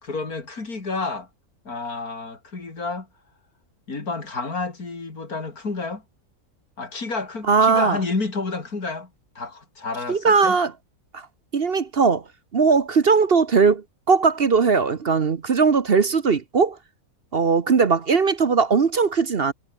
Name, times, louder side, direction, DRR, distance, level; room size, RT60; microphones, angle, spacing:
voice 1, 0.0-1.3 1.7-3.1 3.9-6.0 6.8-9.1 9.4-10.6, left 3 dB, 80° left, 4.0 m, -30 dB
voice 2, 7.5-8.0 10.1-10.7 11.1-11.2 11.5-12.2 12.5-16.8 17.3-19.5, right 5 dB, 45° right, 1.2 m, -19 dB
omnidirectional pair, 1.5 m